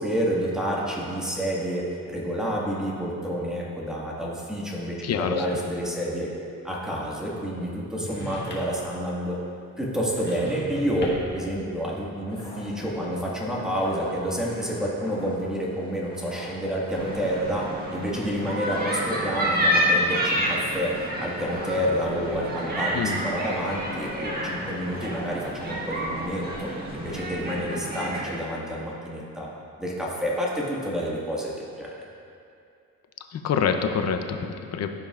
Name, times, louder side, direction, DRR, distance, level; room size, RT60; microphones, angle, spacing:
voice 1, 0.0-6.3 6.6-9.4 9.8-26.7 26.9-29.5 29.8-31.9, equal, ahead, -5 dB, 1.8 m, -29 dB
voice 2, 5.0-5.4 22.9-23.2 33.3-34.9, left 7 dB, 55° left, 6 dB, 0.7 m, -26 dB
sound 1, 8.0-8.9 10.0-11.4, left 1 dB, 35° left, 1.7 m, -37 dB
sound 2, 12.2-27.5, left 1 dB, 15° left, 1.3 m, -45 dB
sound 3, 16.9-28.3, equal, 30° right, 1.6 m, -29 dB
14.5 x 5.3 x 2.5 m, 2.5 s
cardioid pair, 90°, 30 cm